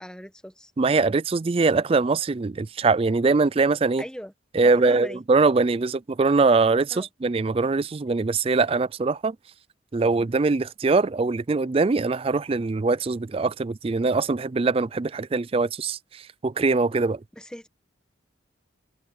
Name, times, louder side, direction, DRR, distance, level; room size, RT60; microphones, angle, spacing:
voice 1, 0.0-0.7 4.0-4.3 4.7-5.2 6.9-7.1 17.4-17.7, equal, 5° left, 1.2 m, -38 dB
voice 2, 0.8-4.0 4.5-9.4 9.9-17.2, right 3 dB, 30° right, 0.4 m, -22 dB
head